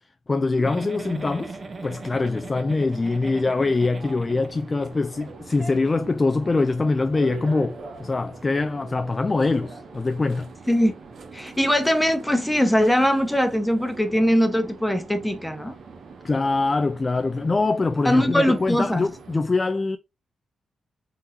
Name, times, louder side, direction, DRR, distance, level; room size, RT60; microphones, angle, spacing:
voice 1, 0.3-1.6 1.8-10.5 16.2-20.0, left 3 dB, 30° left, 0.3 m, -23 dB
Giggle, 0.6-4.9 5.2-5.3 5.6-5.8, right 3 dB, 40° right, 0.7 m, -39 dB
sound 1, 1.0-19.4, right 4 dB, 65° right, 1.0 m, -43 dB
voice 2, 11.3-15.7 18.1-19.0, equal, 10° left, 0.9 m, -21 dB
3.9 x 3.9 x 2.7 m
cardioid pair, 65°, 0 cm